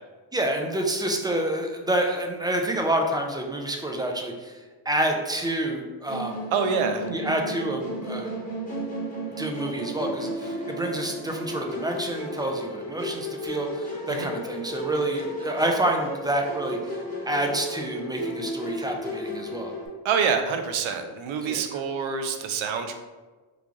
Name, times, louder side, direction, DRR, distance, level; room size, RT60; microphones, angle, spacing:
voice 1, 0.3-4.6 4.9-6.5 7.1-8.3 9.4-16.9 17.3-19.7 21.4-21.6, right 1 dB, 10° right, 2 dB, 0.4 m, -28 dB
Musical instrument, 6.1-19.9, equal, 15° left, 1.3 m, -34 dB
voice 2, 6.5-7.1 14.1-14.3 20.0-22.9, right 6 dB, 75° right, 7 dB, 0.6 m, -26 dB
3.2 x 2.4 x 3.6 m, 1.3 s
cardioid pair, 85°, 48 cm